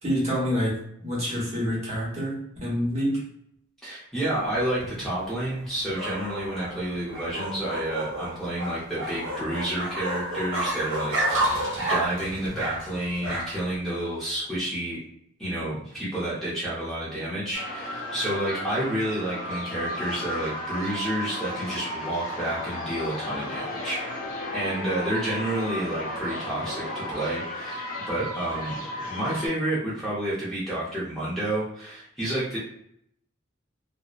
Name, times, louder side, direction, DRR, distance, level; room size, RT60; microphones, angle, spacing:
voice 1, 0.0-3.3, equal, 30° right, -6 dB, 0.9 m, -27 dB
voice 2, 3.8-15.0 15.4-24.2 24.5-28.8 29.1-32.6, right 1 dB, ahead, -9 dB, 0.6 m, -30 dB
sound 1, 4.3-13.8, right 1 dB, 60° right, 0.8 m, -31 dB
sound 2, 17.5-29.5, left 1 dB, 45° left, 0.8 m, -34 dB
2.6 x 2.0 x 2.4 m, 0.71 s
head